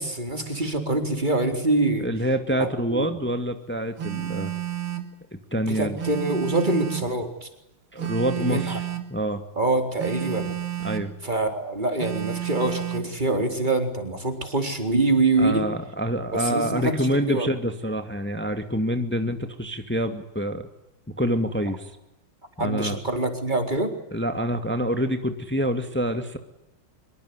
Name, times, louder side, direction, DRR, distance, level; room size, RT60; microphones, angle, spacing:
voice 1, 0.0-2.1 2.6-3.1 5.7-7.5 8.4-8.8 9.6-10.6 11.2-15.7 16.3-16.9 17.2-17.5 22.6-23.9, right 2 dB, 20° right, 6 dB, 4.5 m, -25 dB
voice 2, 2.0-4.5 5.3-6.0 7.9-8.9 9.1-9.4 10.8-11.1 15.4-20.7 21.1-21.9 22.6-23.0 24.1-26.4, equal, 5° left, 7 dB, 2.2 m, -26 dB
Telephone, 4.0-5.1 6.0-7.1 8.0-9.1 10.0-11.1 12.0-13.1, right 13 dB, 80° right, 3.3 m, -31 dB
25.5 x 23.5 x 9.8 m, 0.87 s
omnidirectional pair, 2.3 m